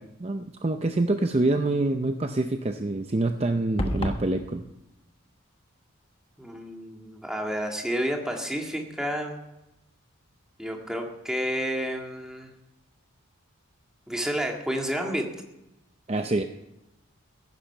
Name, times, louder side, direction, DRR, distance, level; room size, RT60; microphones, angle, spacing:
voice 1, 0.0-4.7 16.1-16.4, right 2 dB, 30° right, 7 dB, 0.6 m, -26 dB
sound 1, 3.8-4.3, left 1 dB, 25° left, 1.2 m, -28 dB
voice 2, 6.4-9.4 10.6-12.5 14.1-15.3, equal, 5° right, 1 dB, 1.9 m, -30 dB
15.5 x 10.5 x 5.5 m, 0.91 s
head